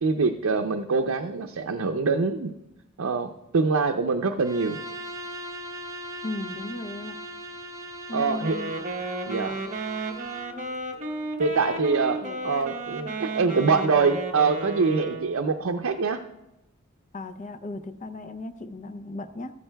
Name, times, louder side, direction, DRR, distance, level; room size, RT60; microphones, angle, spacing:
voice 1, 0.0-2.5 3.0-4.8 8.1-8.6 9.3-9.6 11.4-12.2 12.4-16.2, right 4 dB, 80° right, 4 dB, 0.5 m, -24 dB
Bowed string instrument, 4.4-10.6, right 1 dB, 15° right, 0.5 m, -39 dB
voice 2, 6.2-7.1 8.1-8.7 12.2-12.4 17.1-19.5, left 2 dB, 35° left, 9 dB, 0.6 m, -36 dB
Wind instrument woodwind instrument, 8.4-15.5, right 2 dB, 35° right, 1.0 m, -33 dB
14.5 x 13.5 x 2.3 m, 0.93 s
head